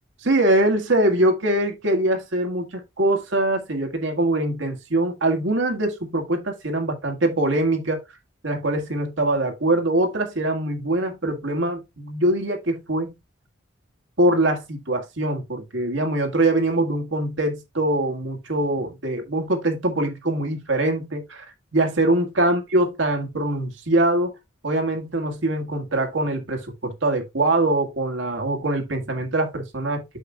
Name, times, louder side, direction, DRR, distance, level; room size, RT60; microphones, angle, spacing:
voice 1, 0.2-8.0 8.4-13.2 14.2-21.5 21.7-24.3 24.6-30.0, right 1 dB, 80° right, 1.9 m, -23 dB
8.3 x 6.7 x 2.3 m
head